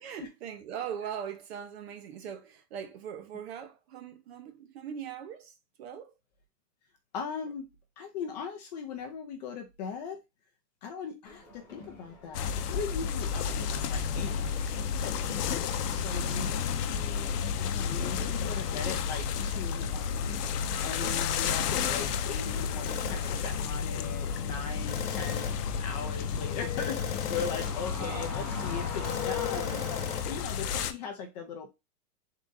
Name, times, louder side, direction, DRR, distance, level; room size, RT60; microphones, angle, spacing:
voice 1, 0.0-6.2 16.1-16.6 26.5-26.7 27.9-28.4, right 8 dB, 45° right, 0.7 m, -41 dB
voice 2, 7.1-7.7 8.0-10.2 10.8-15.4 15.9-20.4 20.8-29.9 30.3-31.7, left 6 dB, 30° left, 0.5 m, -39 dB
Crowd, 11.2-30.7, left 2 dB, 10° left, 1.0 m, -45 dB
sound 1, 12.3-30.9, left 7 dB, 75° left, 0.7 m, -32 dB
sound 2, 21.0-21.2 22.9-23.3 24.9-25.7 26.8-27.9 29.0-30.3, left 7 dB, 45° left, 1.2 m, -38 dB
3.8 x 2.4 x 3.9 m
supercardioid pair, 155°, 47 cm